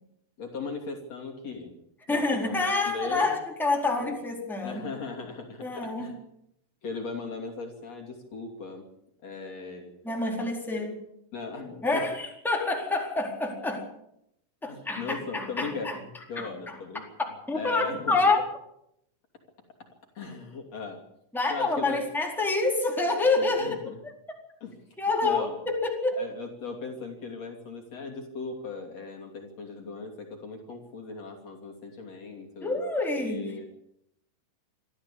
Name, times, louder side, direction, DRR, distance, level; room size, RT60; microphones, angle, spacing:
voice 1, 0.4-1.7 2.1-3.4 4.0-4.2 4.6-6.1 6.8-8.9 9.2-9.9 10.7-10.8 11.3-12.0 14.6-17.1 17.5-18.2 20.2-21.0 21.5-22.0 23.4-24.0 24.6-24.8 25.2-25.6 26.2-32.8 33.2-33.7, left 4 dB, 50° left, 2 dB, 4.0 m, -38 dB
voice 2, 2.1-4.9 5.6-6.1 10.0-10.9 11.8-13.9 14.6-16.0 16.4-16.8 17.5-18.4 21.3-23.8 24.0-24.1 25.0-26.2 32.6-33.4, left 3 dB, ahead, 0 dB, 3.9 m, -27 dB
25.5 x 13.5 x 8.6 m, 0.79 s
omnidirectional pair, 3.9 m